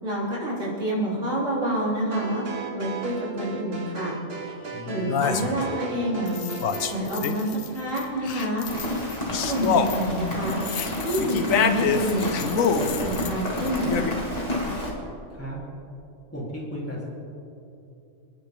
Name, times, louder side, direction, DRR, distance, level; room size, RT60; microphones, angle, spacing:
voice 1, 0.0-2.4 2.7-4.2 4.9-6.4 6.9-8.7 9.5-10.6 11.0-14.1, right 1 dB, 70° right, -7 dB, 4.5 m, -28 dB
sound 1, 2.1-7.0, right 3 dB, 50° right, 1.7 m, -36 dB
sound 2, 4.4-4.5 5.0-5.8 6.3-7.7 8.0-14.1, left 7 dB, 90° left, 1.2 m, -27 dB
voice 2, 4.7-5.3 15.3-15.6 16.3-17.0, left 1 dB, 10° left, -7 dB, 4.0 m, -35 dB
Rain, 8.6-14.9, left 1 dB, 30° left, 2.5 m, -31 dB
27.5 x 9.9 x 3.9 m, 2.8 s
omnidirectional pair, 1.4 m